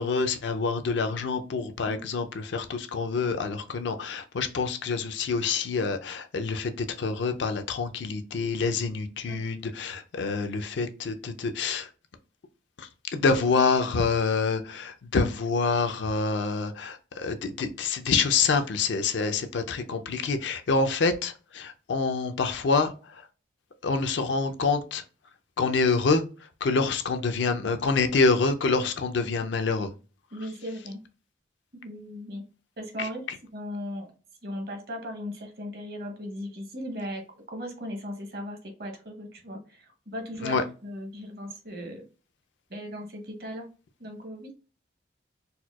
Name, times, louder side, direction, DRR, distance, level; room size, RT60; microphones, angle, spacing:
voice 1, 0.0-11.9 12.8-23.3 23.8-25.0 25.6-29.9 33.0-33.4 40.4-40.6, left 4 dB, 75° left, 7 dB, 0.5 m, -27 dB
voice 2, 30.3-31.0 31.7-32.4 32.8-33.3 33.5-34.1 34.4-42.0 42.7-43.7 44.0-44.5, equal, 55° right, 3 dB, 0.9 m, -37 dB
4.2 x 2.2 x 2.3 m, 0.34 s
head